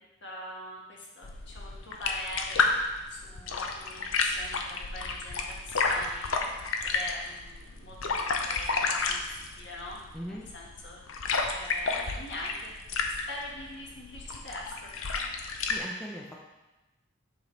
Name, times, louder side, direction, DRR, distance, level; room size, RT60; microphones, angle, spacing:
voice 1, 0.2-2.7 3.1-9.2 9.5-10.0 10.3-11.0 11.5-12.7 13.3-14.9, left 1 dB, 60° left, -3 dB, 1.5 m, -42 dB
sound 1, 1.2-15.8, left 4 dB, 85° left, 0.7 m, -31 dB
voice 2, 10.1-10.5 15.6-16.4, equal, 5° left, -3 dB, 0.5 m, -39 dB
7.6 x 5.4 x 3.2 m, 1.0 s
head